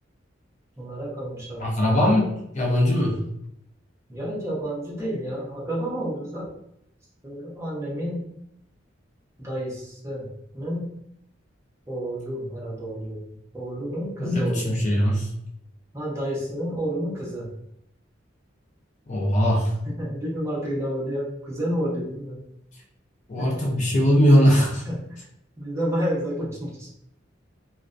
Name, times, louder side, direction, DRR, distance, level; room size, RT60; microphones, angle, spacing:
voice 1, 0.8-1.7 4.1-6.5 7.2-8.3 9.4-10.3 10.5-10.9 11.9-13.2 13.5-14.7 15.9-17.5 20.0-22.4 23.4-23.6 24.9-25.0 25.6-26.9, equal, 15° right, -6 dB, 0.7 m, -30 dB
voice 2, 1.6-3.2 14.2-15.3 19.1-19.7 23.3-24.8, equal, 40° left, -1 dB, 0.4 m, -20 dB
2.4 x 2.1 x 2.4 m, 0.77 s
head